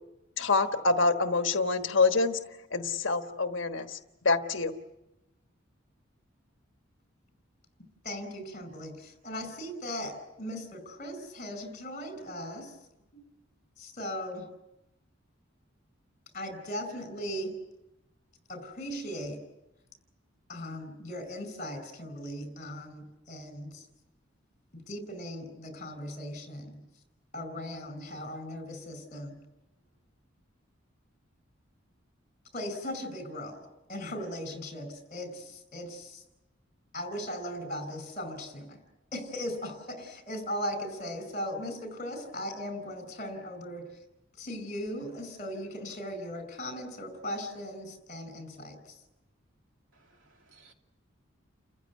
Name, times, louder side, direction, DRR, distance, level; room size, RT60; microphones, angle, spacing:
voice 1, 0.4-2.4 2.7-4.0 4.2-4.7, left 3 dB, 70° left, 7 dB, 1.3 m, -26 dB
voice 2, 8.0-12.7 13.1-13.2 13.8-14.4 16.3-17.5 18.5-19.4 20.5-23.8 24.9-26.8 27.3-29.4 32.5-33.6 33.9-36.2 36.9-38.8 39.1-43.8 44.4-48.8, equal, 40° left, 9 dB, 4.9 m, -38 dB
voice 3, 49.9-50.7, right 4 dB, 75° right, 3 dB, 2.8 m, -61 dB
30.0 x 15.0 x 9.3 m, 0.95 s
head